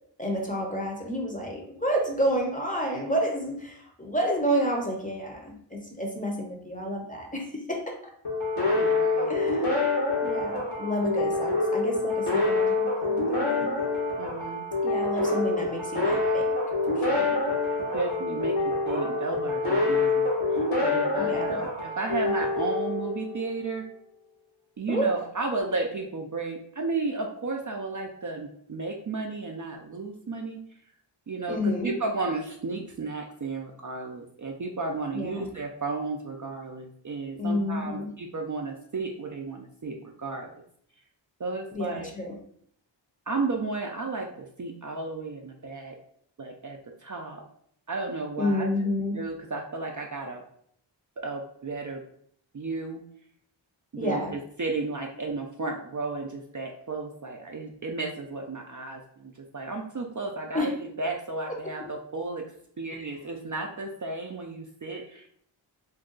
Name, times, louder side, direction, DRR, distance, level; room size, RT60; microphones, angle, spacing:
voice 1, 0.2-8.0 9.3-9.7 10.2-13.7 14.8-16.5 16.9-17.4 21.2-21.6 24.9-25.1 31.5-31.9 35.1-35.5 37.4-38.1 41.7-42.3 48.4-49.2 54.0-54.3 60.5-60.7 62.9-63.1, equal, 15° left, 0 dB, 0.6 m, -30 dB
sound 1, 8.3-23.6, left 3 dB, 85° left, 1.3 m, -26 dB
voice 2, 8.7-9.3 14.2-14.6 17.8-18.6 18.9-23.9 24.8-30.6 31.3-40.6 41.4-42.1 43.3-46.0 46.4-47.4 47.9-48.7 49.1-50.4 51.2-52.0 52.5-53.0 53.9-60.7 61.0-62.5 62.8-65.3, right 3 dB, 40° right, 1 dB, 0.4 m, -33 dB
2.6 x 2.2 x 3.7 m, 0.64 s
wide cardioid pair, 55°, 48 cm